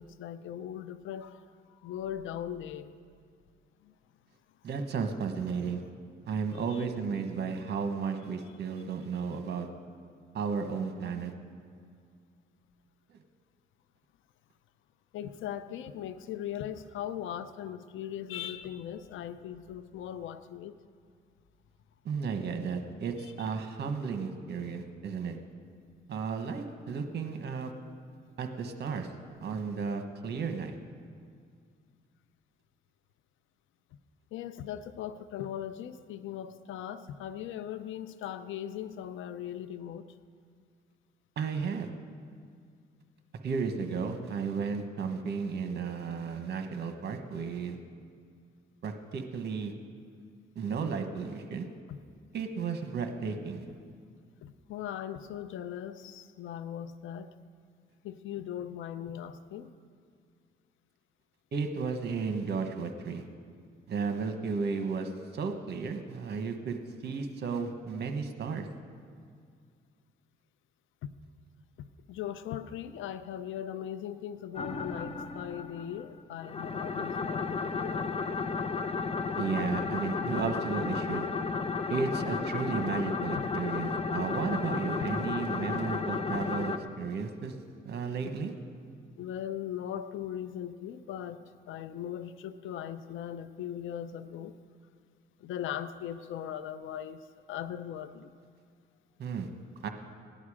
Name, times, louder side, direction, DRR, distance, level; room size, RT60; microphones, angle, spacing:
voice 1, 0.0-1.4 1.8-2.9 3.8-3.9 6.7-6.8 15.1-20.8 34.3-40.0 51.9-52.0 54.4-57.3 58.0-59.7 71.0-71.1 71.8-78.1 83.4-83.5 89.2-91.4 91.7-94.5 95.4-97.2 97.5-98.3, left 10 dB, 80° left, 12 dB, 0.7 m, -39 dB
voice 2, 4.6-5.8 6.2-9.7 10.3-11.3 22.0-25.4 26.1-27.7 28.4-29.1 29.4-30.8 41.4-41.9 43.4-47.8 48.8-49.7 50.5-51.6 52.3-53.6 61.5-63.2 63.9-68.7 79.4-81.3 81.9-87.5 87.8-88.5 99.2-99.5 99.8-99.9, right 5 dB, 55° right, 6 dB, 1.3 m, -33 dB
sound 1, 74.5-76.0 76.4-86.8, left 4 dB, 30° left, 0.8 m, -33 dB
17.5 x 10.5 x 5.0 m, 2.2 s
cardioid pair, 90°, 20 cm